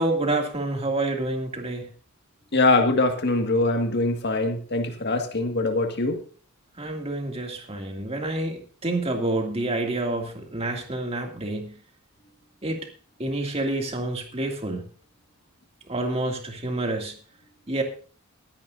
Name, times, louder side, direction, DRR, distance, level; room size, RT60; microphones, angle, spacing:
voice 1, 0.0-1.9 6.8-11.8 12.6-12.8 13.2-14.9 15.9-17.2 17.7-17.8, right 2 dB, 30° right, 3 dB, 2.4 m, -28 dB
voice 2, 2.5-6.2, left 2 dB, 55° left, 4 dB, 1.9 m, -23 dB
23.0 x 10.5 x 2.6 m, 0.40 s
head